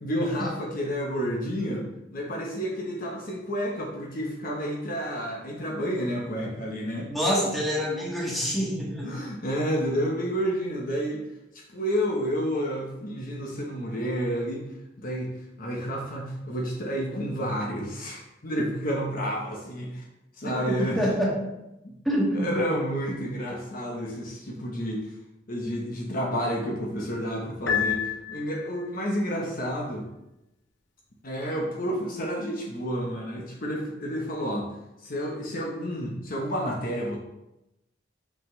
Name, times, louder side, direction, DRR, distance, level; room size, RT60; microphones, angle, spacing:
voice 1, 0.0-7.1 9.0-11.2 11.7-14.7 15.0-15.3 15.6-20.0 20.4-21.0 21.8-22.0 22.3-25.1 25.5-30.1 31.2-34.7 35.0-37.2, equal, 50° left, -2 dB, 1.0 m, -30 dB
voice 2, 7.1-9.1 20.8-21.5 22.0-22.7, equal, ahead, -5 dB, 1.6 m, -26 dB
Piano, 27.7-28.9, left 8 dB, 80° left, 0.8 m, -28 dB
5.6 x 5.3 x 3.2 m, 0.90 s
head